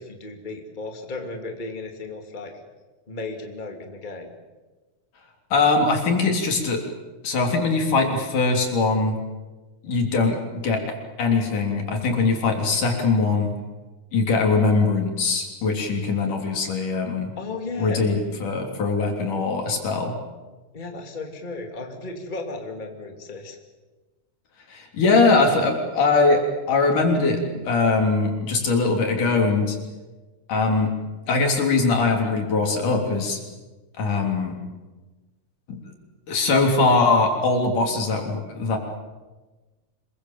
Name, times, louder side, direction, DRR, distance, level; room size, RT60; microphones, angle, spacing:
voice 1, 0.0-2.6 3.1-4.3 17.4-18.0 20.7-23.6, left 3 dB, 15° left, 3 dB, 2.5 m, -35 dB
voice 2, 5.5-6.8 7.2-9.2 9.8-10.8 11.2-13.5 14.1-17.3 17.8-20.2 24.7-29.8 30.5-30.9 31.3-33.4 34.0-34.6 35.7-35.8 36.3-38.8, left 3 dB, 80° left, 2 dB, 5.0 m, -21 dB
27.0 x 22.0 x 7.4 m, 1.2 s
omnidirectional pair, 3.6 m